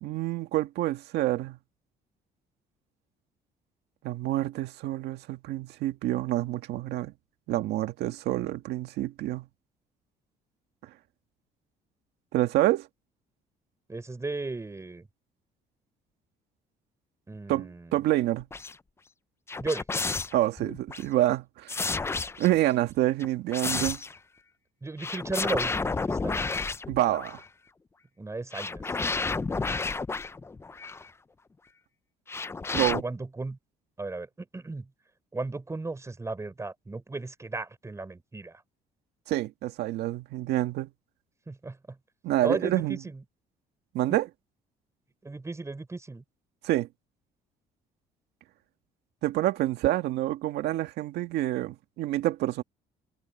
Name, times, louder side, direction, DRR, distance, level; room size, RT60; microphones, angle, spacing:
voice 1, 0.0-1.6 4.0-7.1 7.5-9.5 12.3-12.9 17.5-18.5 20.3-21.8 22.4-24.0 26.9-27.4 32.7-33.0 39.3-40.9 42.2-43.0 43.9-44.3 46.6-46.9 49.2-52.6, right 15 dB, 80° right, 1.8 m, -27 dB
voice 2, 13.9-15.1 17.3-17.9 19.6-19.9 24.8-26.4 28.2-28.9 33.0-33.6 34.0-34.9 35.3-38.6 41.5-42.0 42.4-43.2 45.2-46.2, right 3 dB, 15° right, 4.6 m, -35 dB
sound 1, 18.4-18.7 19.5-21.0 21.7-22.7 23.2-24.2 25.0-27.5 28.5-31.1 32.3-33.0, left 4 dB, 15° left, 0.5 m, -31 dB
cardioid pair, 110°, 17 cm